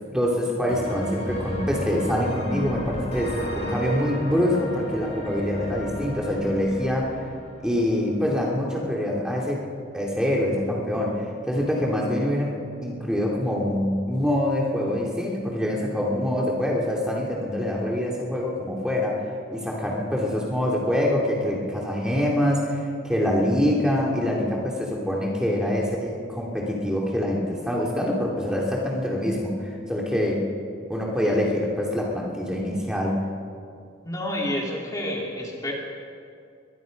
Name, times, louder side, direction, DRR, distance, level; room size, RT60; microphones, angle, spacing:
voice 1, 0.1-7.2 7.6-9.6 9.9-19.2 19.5-30.4 30.9-33.2, left 1 dB, 5° right, -3 dB, 2.8 m, -25 dB
sound 1, 0.7-8.3, equal, 35° left, 4.2 m, -33 dB
voice 2, 34.0-35.7, left 1 dB, 20° left, -2 dB, 2.6 m, -29 dB
23.0 x 21.5 x 5.3 m, 2.3 s
head